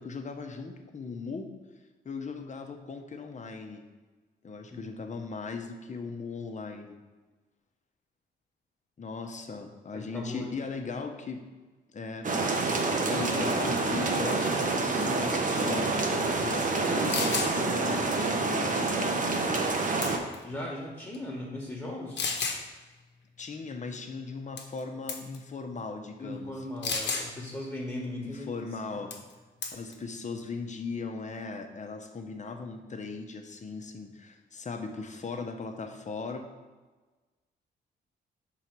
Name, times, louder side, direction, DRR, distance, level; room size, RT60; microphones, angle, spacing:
voice 1, 0.0-1.5 2.0-3.8 4.4-7.0 9.0-11.4 11.9-12.7 13.1-19.2 23.4-26.5 28.2-29.1 29.7-36.4, left 4 dB, 40° left, 5 dB, 0.9 m, -38 dB
voice 2, 9.9-10.5 20.4-22.3 26.2-28.5, left 1 dB, 10° left, -2 dB, 1.4 m, -38 dB
sound 1, 12.2-20.2, right 3 dB, 40° right, 1.0 m, -27 dB
sound 2, 16.8-16.9 17.1-17.5 19.5-19.8 20.0-20.4 21.1-21.2 22.2-22.6 24.6-24.8 25.1-25.4 26.8-27.3 29.1-29.3 29.6-29.9, left 5 dB, 65° left, 1.0 m, -31 dB
5.7 x 3.9 x 4.6 m, 1.3 s
supercardioid pair, 60°, 19 cm